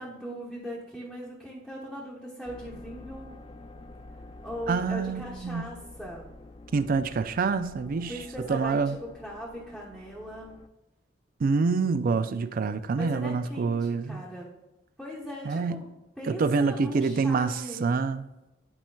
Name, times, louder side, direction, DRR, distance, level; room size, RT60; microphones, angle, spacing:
voice 1, 0.0-3.3 4.4-6.3 8.1-10.5 13.0-14.5 15.0-15.9 16.2-17.8, equal, 5° right, 1.0 m, -39 dB
sound 1, 2.4-10.7, left 2 dB, 30° left, 0.4 m, -48 dB
voice 2, 4.7-5.7 6.7-8.2 8.5-9.0 11.4-14.2 15.5-15.8 16.2-18.2, right 4 dB, 50° right, 0.4 m, -26 dB
11.0 x 4.4 x 2.3 m
head